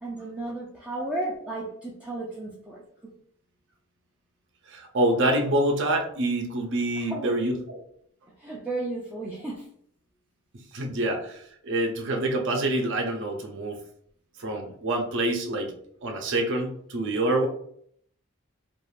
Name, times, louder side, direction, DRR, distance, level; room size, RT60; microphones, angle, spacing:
voice 1, 0.0-2.8 7.0-7.3 8.4-9.7, right 2 dB, 5° right, -5 dB, 0.4 m, -34 dB
voice 2, 4.7-7.8 10.7-13.8 14.4-15.7 16.0-17.5, right 1 dB, 55° right, 3 dB, 0.6 m, -26 dB
2.5 x 2.4 x 3.2 m, 0.65 s
head